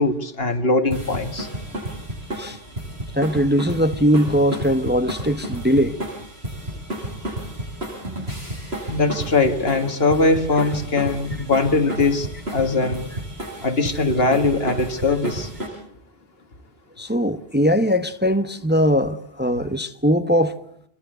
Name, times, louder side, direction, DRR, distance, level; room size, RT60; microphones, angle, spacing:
voice 1, 0.0-1.5 8.9-12.3 12.5-13.1 13.6-15.5, left 3 dB, 70° left, 2.1 m, -21 dB
sound 1, 0.9-15.7, right 1 dB, 80° right, 8.2 m, -32 dB
voice 2, 3.1-6.0 17.0-20.6, equal, 10° right, 0.9 m, -20 dB
26.5 x 22.5 x 7.9 m
omnidirectional pair, 1.1 m